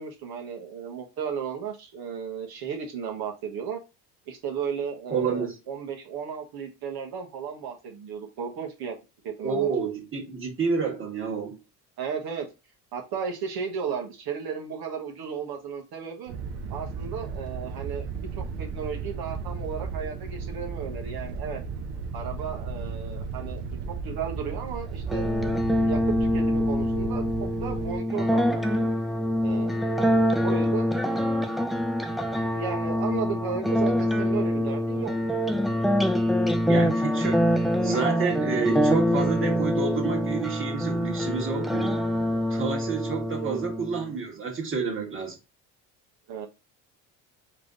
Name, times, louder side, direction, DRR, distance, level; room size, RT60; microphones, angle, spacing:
voice 1, 0.0-3.8 4.3-9.0 9.2-9.7 12.0-12.5 12.9-16.3 16.7-21.6 22.1-23.6 23.9-25.3 25.8-28.9 29.4-29.9 30.4-30.9 32.5-35.3 43.1-43.6 46.3-46.5, right 6 dB, 65° right, 1.3 m, -34 dB
voice 2, 5.1-5.6 9.4-11.6 36.7-42.0 42.5-45.4, right 5 dB, 30° right, 1.7 m, -29 dB
sound 1, 16.3-28.0, right 5 dB, 80° right, 1.0 m, -35 dB
sound 2, 25.1-44.1, equal, ahead, 0.4 m, -25 dB
3.6 x 3.3 x 3.9 m
supercardioid pair, 95°, 40 cm